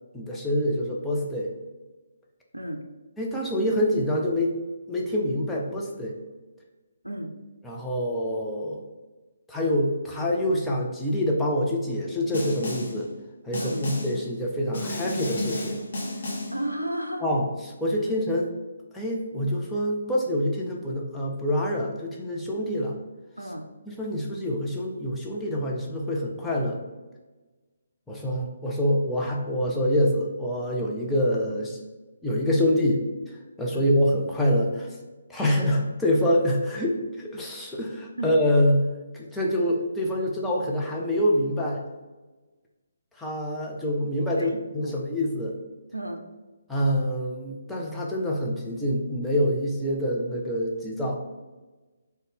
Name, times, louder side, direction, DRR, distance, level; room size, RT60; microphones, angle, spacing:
voice 1, 0.1-1.5 3.2-4.6 4.9-6.2 7.6-8.8 9.5-13.1 13.4-15.8 17.2-18.5 18.9-23.0 23.9-26.8 28.1-31.8 32.2-35.0 35.3-38.8 39.1-41.8 43.2-45.5 46.7-51.2, equal, 5° left, -4 dB, 0.4 m, -26 dB
Snare drum, 12.3-13.0 13.5-14.2 14.7-16.6, left 1 dB, 45° left, 0.7 m, -32 dB
voice 2, 16.5-17.2 23.4-23.6 33.7-33.9 38.2-38.3 44.4-45.0 45.9-46.2, right 1 dB, 85° right, 4 dB, 0.4 m, -33 dB
3.7 x 2.1 x 3.5 m, 1.2 s
figure-of-eight pair, 140°, 0 cm